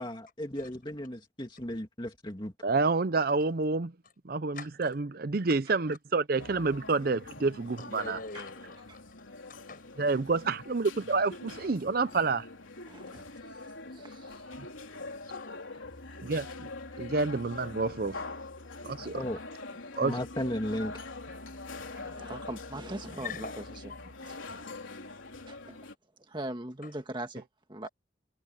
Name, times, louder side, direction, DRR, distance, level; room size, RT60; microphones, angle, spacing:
voice 1, 0.0-2.5 19.1-19.4 20.0-21.0, left 1 dB, 25° left, 2.6 m, -35 dB
voice 2, 2.6-3.9 4.2-8.2 10.0-12.5 16.2-16.7 17.0-18.2 18.8-19.2 20.0-20.2, right 3 dB, 50° right, 0.6 m, -28 dB
sound 1, 6.4-25.9, left 3 dB, 85° left, 3.9 m, -44 dB
voice 3, 7.8-9.9 13.8-14.2 14.9-15.6 16.2-16.3 17.6-17.7 21.0-21.1 23.2-23.6 23.9-24.0 27.8-27.9, left 4 dB, 45° left, 7.5 m, -45 dB
voice 4, 12.9-13.6 13.9-14.4 21.9-23.6 25.5-25.8 26.2-27.9, right 1 dB, 25° right, 1.6 m, -41 dB
head